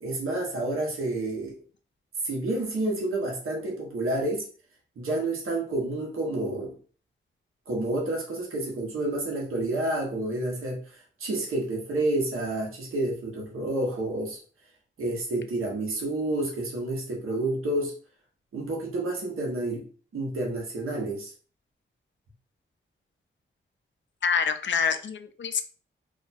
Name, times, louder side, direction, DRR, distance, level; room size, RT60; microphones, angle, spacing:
voice 1, 0.0-1.5 2.2-4.4 5.0-6.7 7.7-14.4 15.0-17.9 18.5-19.8 20.1-21.3, right 2 dB, 85° right, -2 dB, 1.2 m, -29 dB
voice 2, 24.2-25.6, left 6 dB, 60° left, 9 dB, 0.5 m, -26 dB
2.8 x 2.3 x 4.1 m, 0.41 s
cardioid pair, 65°, 21 cm